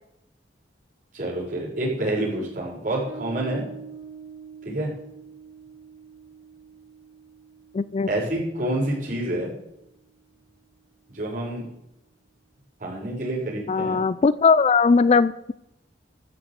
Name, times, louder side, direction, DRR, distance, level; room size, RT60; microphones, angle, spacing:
voice 1, 1.1-3.6 4.6-4.9 8.1-9.5 11.1-11.6 12.8-14.0, right 1 dB, 50° right, -5 dB, 6.1 m, -28 dB
Bass guitar, 3.1-10.2, right 6 dB, 85° right, 4.2 m, -45 dB
voice 2, 7.7-8.1 13.7-15.5, left 4 dB, 35° left, 18 dB, 0.4 m, -19 dB
13.5 x 7.2 x 8.2 m, 0.82 s
head